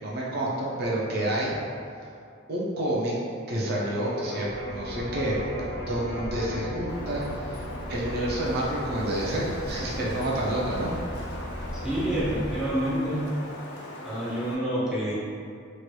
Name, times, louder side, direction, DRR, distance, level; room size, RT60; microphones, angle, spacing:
voice 1, 0.0-1.6 2.5-3.1 3.5-7.6 7.9-10.9, right 1 dB, 50° right, -5 dB, 0.4 m, -29 dB
Electric guitar, 3.9-11.7, equal, 75° right, 1.1 m, -40 dB
Boat Water vehicle / Engine, 4.4-13.3, equal, 20° left, 1.3 m, -38 dB
Wind, 6.9-14.5, left 1 dB, 55° left, 0.4 m, -40 dB
voice 2, 11.8-13.3 14.0-15.1, right 1 dB, 5° right, -9 dB, 0.6 m, -27 dB
2.9 x 2.9 x 2.2 m, 2.3 s
head